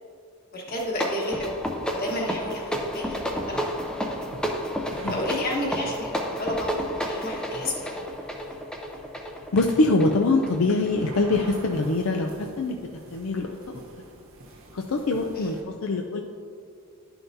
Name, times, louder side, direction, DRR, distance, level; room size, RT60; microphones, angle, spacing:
voice 1, 0.5-1.6 1.9-3.9 5.1-8.1 15.3-15.5, left 1 dB, 40° left, -2 dB, 1.3 m, -31 dB
sound 1, 0.7-11.0, equal, 5° left, 0.5 m, -31 dB
sound 2, 1.6-15.6, right 1 dB, 70° right, 1.0 m, -46 dB
voice 2, 9.5-12.8 13.1-13.6 14.7-15.6 15.8-16.2, left 2 dB, 70° left, 2 dB, 0.5 m, -23 dB
11.0 x 5.7 x 2.7 m, 2.3 s
head